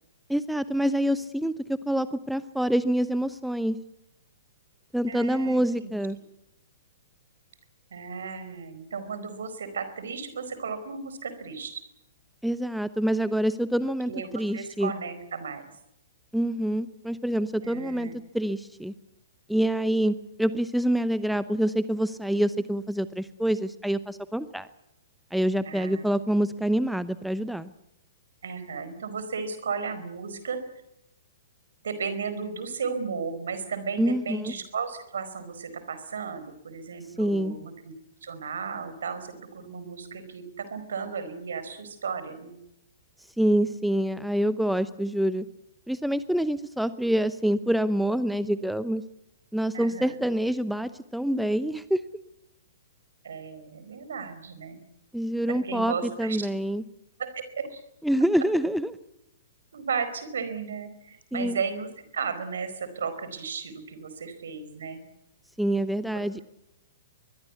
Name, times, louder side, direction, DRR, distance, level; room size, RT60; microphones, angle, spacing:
voice 1, 0.3-3.8 4.9-6.2 12.4-14.9 16.3-18.9 19.5-24.7 25.3-27.7 34.0-34.5 37.2-37.6 43.4-45.5 45.9-49.0 49.5-52.0 55.1-56.8 58.0-58.9 61.3-61.6 65.6-66.4, right 1 dB, ahead, 15 dB, 0.8 m, -26 dB
voice 2, 5.1-5.9 7.9-11.8 14.1-15.6 17.6-18.1 25.6-26.1 28.4-30.6 31.8-37.9 38.2-42.5 49.7-50.1 53.2-54.8 55.5-56.5 57.2-57.8 59.7-65.0 66.1-66.2, right 5 dB, 60° right, 11 dB, 4.7 m, -34 dB
23.5 x 21.0 x 8.4 m, 0.85 s
figure-of-eight pair, 110°, 0 cm